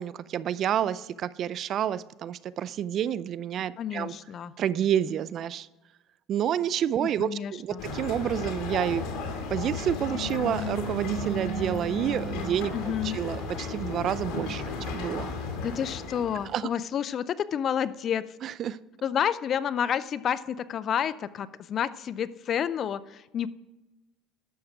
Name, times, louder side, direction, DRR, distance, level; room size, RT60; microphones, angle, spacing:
voice 1, 0.0-4.1 4.6-5.7 6.3-9.0 9.5-12.7 13.0-15.3 16.5-16.7 18.4-18.8, right 10 dB, 55° right, 18 dB, 0.4 m, -29 dB
voice 2, 3.8-4.5 7.2-7.8 12.7-13.2 14.5-14.9 15.6-18.2 19.0-23.5, left 9 dB, 50° left, 17 dB, 0.5 m, -30 dB
sound 1, 7.8-16.6, left 2 dB, 70° left, 2.1 m, -34 dB
11.5 x 7.2 x 4.9 m, 1.1 s
supercardioid pair, 85°, 0 cm